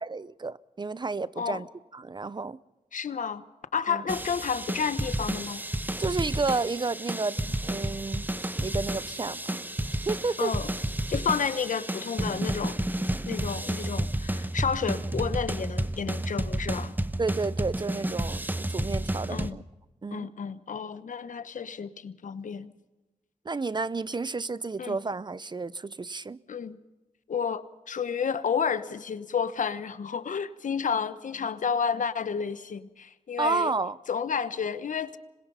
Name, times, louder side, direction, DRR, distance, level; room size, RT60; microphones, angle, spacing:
voice 1, 0.0-1.7 1.9-2.6 3.9-4.0 6.0-8.3 8.5-9.6 10.0-10.5 17.2-19.6 20.0-20.3 23.4-26.4 33.4-34.0, right 3 dB, 35° right, 0.6 m, -31 dB
voice 2, 2.9-3.4 3.7-5.7 10.4-10.7 11.1-12.8 13.3-16.9 19.3-19.6 20.1-22.7 24.8-25.0 26.5-26.8 27.3-33.7 34.1-35.2, left 6 dB, 70° left, 1.0 m, -31 dB
sound 1, 4.1-19.5, right 1 dB, 15° right, 1.0 m, -31 dB
26.0 x 21.5 x 5.6 m
cardioid pair, 60°, 14 cm